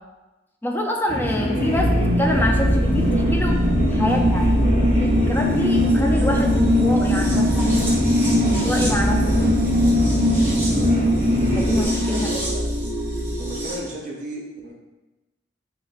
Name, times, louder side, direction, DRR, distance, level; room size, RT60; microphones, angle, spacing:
voice 1, 0.6-3.6 3.9-4.5 4.9-7.7 8.5-9.2 11.6-12.3, left 1 dB, 10° left, 1 dB, 0.4 m, -26 dB
sound 1, 1.1-11.8, equal, 35° left, 1.0 m, -25 dB
sound 2, 1.7-13.8, left 1 dB, 10° right, 0.9 m, -21 dB
voice 2, 11.5-12.8 13.4-14.7, right 1 dB, 40° right, -2 dB, 0.6 m, -33 dB
6.3 x 2.1 x 2.4 m, 1.1 s
head